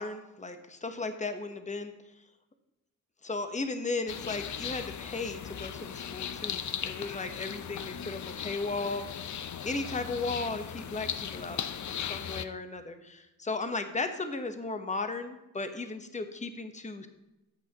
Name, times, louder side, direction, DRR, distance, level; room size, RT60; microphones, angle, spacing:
voice 1, 0.0-1.9 3.2-11.6 11.9-17.1, left 3 dB, 20° left, 8 dB, 1.0 m, -36 dB
sound 1, 4.1-12.5, left 8 dB, 50° left, 0.6 m, -38 dB
14.5 x 6.3 x 3.0 m, 0.98 s
cardioid pair, 65°, 37 cm